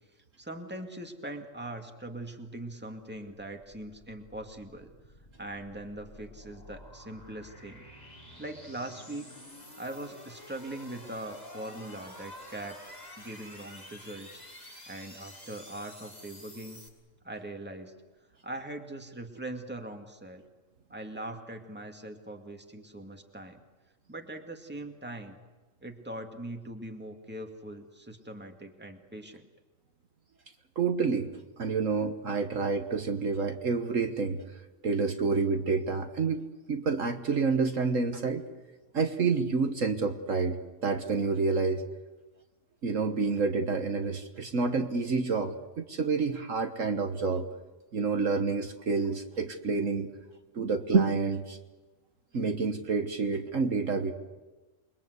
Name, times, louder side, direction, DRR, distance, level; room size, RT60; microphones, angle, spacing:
voice 1, 0.4-4.9 5.4-7.9 8.4-9.3 9.8-12.8 13.2-14.4 14.9-16.8 17.2-17.9 18.4-20.4 20.9-23.6 24.1-25.4 25.8-29.5, right 1 dB, 5° right, 4 dB, 2.2 m, -41 dB
sound 1, 3.6-16.9, left 1 dB, 25° left, 6.0 m, -50 dB
voice 2, 30.7-34.4 34.8-36.4 36.7-38.4 38.9-41.8 42.8-47.5 47.9-50.1 50.5-51.6 52.3-54.1, right 4 dB, 60° right, 6 dB, 1.7 m, -28 dB
28.5 x 22.5 x 8.1 m, 1.2 s
omnidirectional pair, 1.6 m